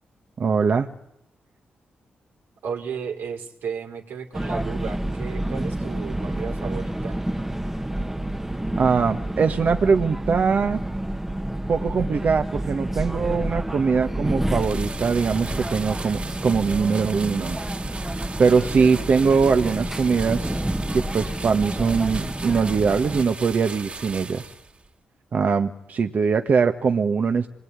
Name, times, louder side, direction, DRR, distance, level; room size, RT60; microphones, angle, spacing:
voice 1, 0.4-0.9 8.8-10.8 11.7-17.6 18.4-20.6 20.9-24.5 25.3-27.5, right 5 dB, 55° right, 6 dB, 1.5 m, -22 dB
voice 2, 2.6-7.2 19.2-19.4, right 6 dB, 80° right, 4 dB, 3.8 m, -34 dB
sound 1, 4.3-23.2, right 1 dB, 10° right, 1.2 m, -29 dB
sound 2, 14.5-24.9, right 3 dB, 35° right, 2.5 m, -38 dB
26.5 x 21.5 x 9.7 m, 0.82 s
cardioid pair, 80°, 4 cm